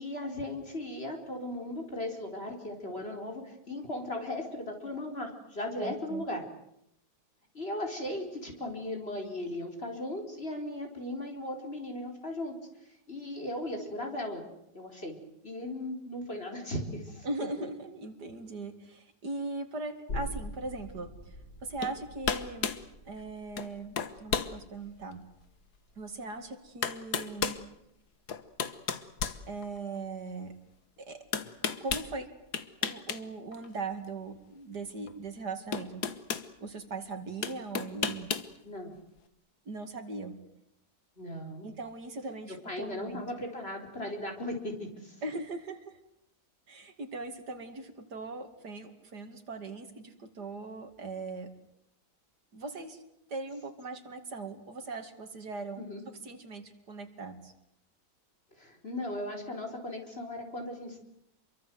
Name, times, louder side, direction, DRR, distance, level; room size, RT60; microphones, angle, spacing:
voice 1, 0.0-6.4 7.5-12.5 13.1-14.4 14.7-15.2 15.4-17.3 17.6-17.7 38.6-38.9 41.2-41.7 42.5-45.2 55.8-56.0 58.6-61.0, left 1 dB, 35° left, 3 dB, 4.7 m, -37 dB
voice 2, 5.8-6.2 17.2-21.3 21.6-22.7 23.0-25.2 26.0-27.6 29.5-30.5 31.0-31.2 31.8-32.3 32.8-36.0 36.6-38.3 39.7-40.3 41.6-43.2 45.2-46.0 46.7-51.5 52.5-53.0 53.3-57.5, right 3 dB, 75° right, 7 dB, 2.9 m, -39 dB
sound 1, 20.1-27.4 27.7-27.8, left 1 dB, 85° left, 6.9 m, -45 dB
sound 2, 21.8-22.0 22.2-22.8 23.6-23.7 24.0-24.5 25.1-25.2 26.3-26.4 26.8-27.6 28.3-30.0 31.3-32.1 32.5-33.2 33.5-33.7 35.1-35.2 35.7-36.5 37.4-38.5, left 7 dB, 70° left, 1.9 m, -32 dB
28.0 x 23.5 x 7.9 m, 0.78 s
omnidirectional pair, 1.8 m